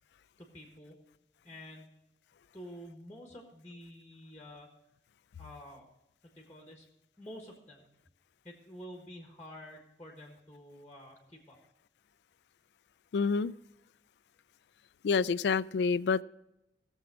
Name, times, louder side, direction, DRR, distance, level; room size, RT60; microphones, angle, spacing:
voice 1, 0.4-1.0 1.4-1.9 2.5-4.7 5.4-5.9 6.2-6.9 7.2-7.9 8.4-11.6, equal, 10° left, 1.5 m, -49 dB
voice 2, 13.1-13.5 15.0-16.2, left 5 dB, 75° left, 0.3 m, -28 dB
17.5 x 7.2 x 4.8 m
head